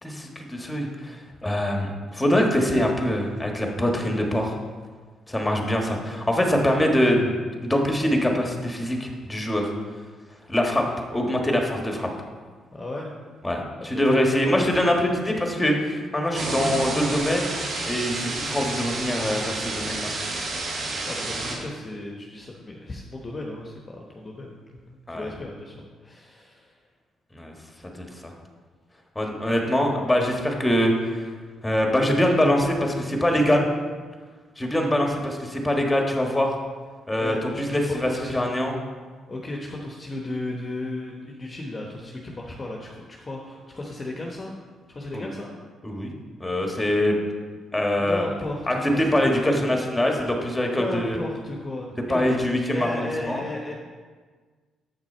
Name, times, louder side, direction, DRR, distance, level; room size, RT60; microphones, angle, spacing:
voice 1, 0.0-4.6 5.3-9.7 10.5-10.8 11.1-12.1 13.4-17.5 17.8-20.1 25.1-25.3 27.3-27.5 29.1-31.2 31.6-33.7 34.6-36.5 37.1-38.8 45.1-45.3 45.8-46.1 46.4-47.2 47.7-48.3 48.7-51.2 52.1-53.4, left 1 dB, 10° left, 1 dB, 1.4 m, -23 dB
voice 2, 12.7-13.1 13.8-14.0 21.0-26.7 37.2-38.4 39.3-44.6 44.9-45.5 47.9-49.1 49.4-49.8 50.8-53.7, left 2 dB, 30° left, -1 dB, 1.0 m, -35 dB
sound 1, 16.3-21.6, right 2 dB, 65° right, 2.1 m, -30 dB
7.6 x 6.0 x 4.4 m, 1.5 s
cardioid pair, 90°, 0 cm